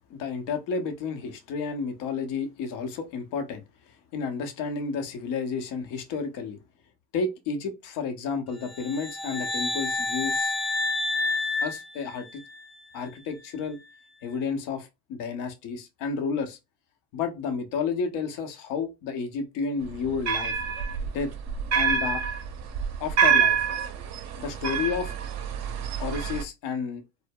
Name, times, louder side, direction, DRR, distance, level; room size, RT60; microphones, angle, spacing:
voice 1, 0.1-3.6 4.1-6.6 7.1-10.5 11.6-12.4 12.9-13.8 14.2-16.6 17.1-20.6 21.1-21.3 21.7-22.2 23.0-23.6 24.4-25.1 26.0-27.0, left 5 dB, 60° left, 0.7 m, -31 dB
sound 1, 8.7-12.7, left 3 dB, ahead, 0.4 m, -29 dB
sound 2, 19.9-26.4, right 7 dB, 45° right, 0.6 m, -27 dB
2.0 x 2.0 x 3.4 m
hypercardioid pair, 75°, 37 cm